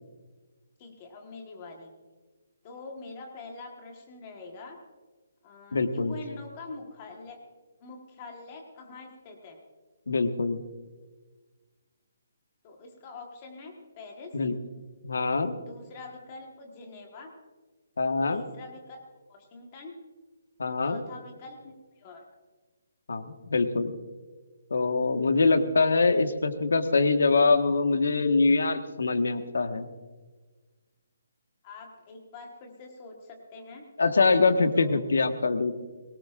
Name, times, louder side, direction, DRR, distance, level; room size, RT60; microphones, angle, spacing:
voice 1, 0.8-1.9 2.6-4.8 5.4-7.4 7.8-9.6 12.6-14.3 15.7-17.3 18.3-19.9 20.8-22.2 31.6-33.9 34.7-35.0, left 3 dB, 20° left, 2 dB, 1.4 m, -45 dB
voice 2, 5.7-6.2 10.1-10.6 14.3-14.5 15.0-15.6 18.0-18.4 20.6-21.0 23.1-23.9 24.7-29.9 34.0-35.7, left 3 dB, 85° left, 7 dB, 1.4 m, -24 dB
22.0 x 18.0 x 2.5 m, 1.3 s
hypercardioid pair, 180°, 0 cm